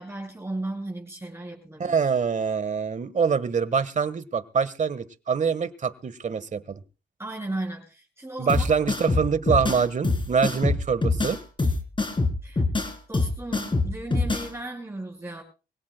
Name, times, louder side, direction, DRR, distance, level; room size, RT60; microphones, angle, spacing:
voice 1, 0.0-2.0 7.2-8.7 12.4-12.6 13.1-15.4, right 2 dB, 15° right, -2 dB, 7.1 m, -35 dB
voice 2, 1.8-6.8 8.4-11.4, right 6 dB, 50° right, 15 dB, 1.4 m, -25 dB
sound 1, 8.5-14.5, left 3 dB, 30° left, 3.7 m, -25 dB
24.0 x 17.5 x 2.2 m, 0.33 s
cardioid pair, 65°, 16 cm